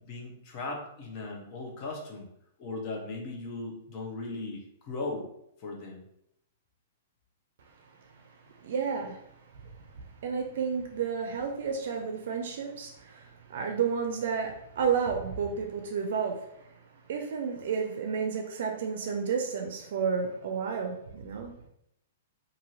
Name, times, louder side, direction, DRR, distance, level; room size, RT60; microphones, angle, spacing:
voice 1, 0.0-2.3 2.6-5.3 5.6-6.0 11.2-11.3 12.0-12.1, left 3 dB, 35° left, 0 dB, 0.8 m, -38 dB
voice 2, 8.6-9.2 10.2-16.4 17.1-21.5, right 6 dB, 65° right, 2 dB, 0.4 m, -31 dB
2.6 x 2.6 x 3.0 m, 0.76 s
hypercardioid pair, 150°, 0 cm